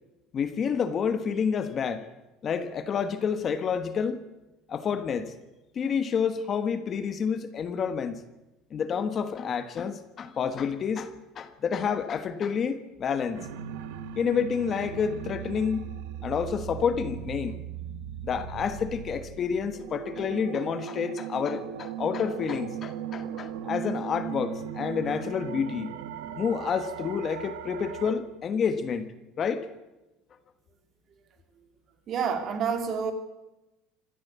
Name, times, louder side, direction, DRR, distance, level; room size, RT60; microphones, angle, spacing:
voice 1, 0.3-2.1 2.4-4.2 4.7-5.3 5.7-8.2 8.7-13.5 14.1-15.9 16.2-17.6 18.2-25.9 26.4-29.6, left 6 dB, 30° left, 11 dB, 1.3 m, -29 dB
sound 1, 13.3-28.1, right 9 dB, 85° right, 1.7 m, -38 dB
voice 2, 32.1-33.1, right 6 dB, 35° right, 7 dB, 2.9 m, -28 dB
26.0 x 15.0 x 8.3 m, 1.0 s
cardioid pair, 150°, 0 cm